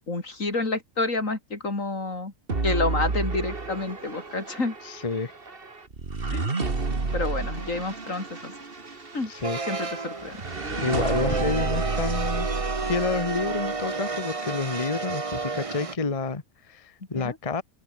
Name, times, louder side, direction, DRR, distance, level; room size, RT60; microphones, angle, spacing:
voice 1, 0.1-2.3 2.6-4.7 6.3-6.5 7.1-8.5 9.1-9.3 9.7-10.4 17.2-17.4, left 3 dB, 75° left, 4.4 m, -29 dB
sound 1, 2.5-13.8, right 3 dB, 45° right, 2.4 m, -31 dB
voice 2, 4.8-5.3 9.3-9.8 10.8-12.5 12.8-17.6, left 4 dB, 25° left, 1.3 m, -29 dB
sound 2, 9.4-15.9, right 4 dB, 25° right, 1.2 m, -31 dB
open air
omnidirectional pair, 1.4 m